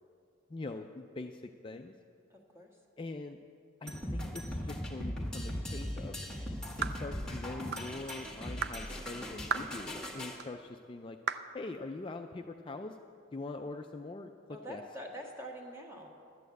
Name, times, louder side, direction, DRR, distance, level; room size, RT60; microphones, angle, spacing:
voice 1, 0.5-1.9 3.0-3.4 3.8-6.2 6.8-11.2 11.5-13.0 13.3-14.8, left 2 dB, 25° left, 4 dB, 0.3 m, -43 dB
voice 2, 2.3-2.7 14.5-16.1, equal, 15° right, 0 dB, 1.4 m, -45 dB
sound 1, 3.9-10.4, equal, 5° left, 1.6 m, -39 dB
sound 2, 6.8-7.0 7.7-7.9 8.6-8.8 9.5-9.7 10.4-10.5 11.3-11.5, right 7 dB, 50° right, 0.4 m, -34 dB
11.5 x 8.6 x 7.9 m, 2.4 s
head